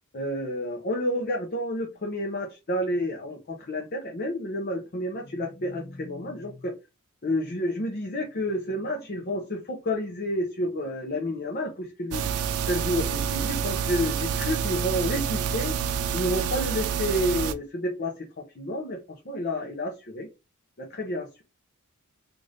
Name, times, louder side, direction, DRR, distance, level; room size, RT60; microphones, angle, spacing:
voice 1, 0.1-6.7 7.2-12.3 12.7-15.8 16.1-20.3 20.8-21.4, left 1 dB, 45° left, 0 dB, 0.7 m, -30 dB
sound 1, 12.1-17.5, right 7 dB, 85° right, 0.4 m, -28 dB
3.3 x 2.5 x 3.8 m, 0.27 s
head